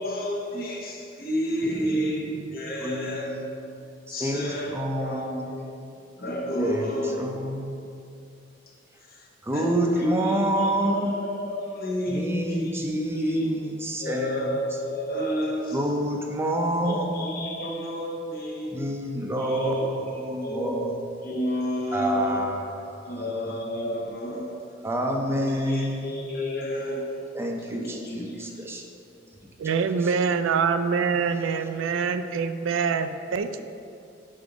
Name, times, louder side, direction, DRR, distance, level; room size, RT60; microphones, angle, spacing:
voice 1, 0.0-3.4 4.1-7.6 8.7-13.5 14.0-16.0 16.8-18.8 19.4-20.9 21.2-22.5 23.0-24.6 25.4-27.3 27.6-28.6, equal, 50° left, -1 dB, 1.0 m, -31 dB
voice 2, 1.7-2.3 2.8-3.4 4.1-5.4 5.8-5.9 6.6-6.9 7.2-7.8 9.4-11.1 12.1-14.5 15.7-17.4 18.7-20.9 21.9-23.1 24.8-26.3 27.3-28.8 30.0-30.1, right 1 dB, 15° right, 1 dB, 0.5 m, -28 dB
voice 3, 29.6-33.6, right 5 dB, 90° right, 10 dB, 0.4 m, -25 dB
5.3 x 4.6 x 5.0 m, 2.5 s
head